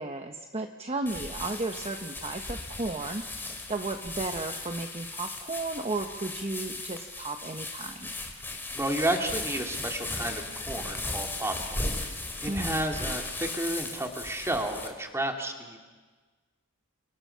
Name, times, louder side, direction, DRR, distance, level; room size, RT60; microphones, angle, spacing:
voice 1, 0.0-8.1 12.5-12.8, right 2 dB, 30° right, 5 dB, 1.1 m, -34 dB
sound 1, 1.1-14.9, left 2 dB, 10° left, 2.7 m, -37 dB
voice 2, 8.7-15.8, right 1 dB, 15° right, 3 dB, 2.4 m, -32 dB
30.0 x 25.5 x 5.8 m, 1.4 s
head